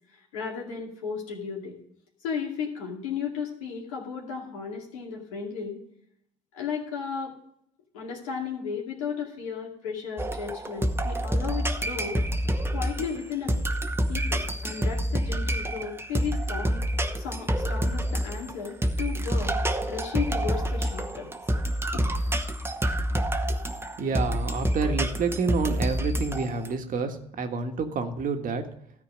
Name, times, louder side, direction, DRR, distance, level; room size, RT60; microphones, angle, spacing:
voice 1, 0.3-1.8 2.2-5.8 6.5-7.3 7.9-12.2 12.7-13.5 14.1-16.8 17.2-19.6 19.9-21.3 21.9-22.1, left 6 dB, 90° left, -1 dB, 2.4 m, -34 dB
sound 1, 10.2-26.7, equal, 15° right, 1.0 m, -28 dB
voice 2, 24.0-28.7, right 4 dB, 55° right, 6 dB, 1.5 m, -29 dB
13.5 x 4.5 x 7.4 m, 0.74 s
hypercardioid pair, 55°, 17 cm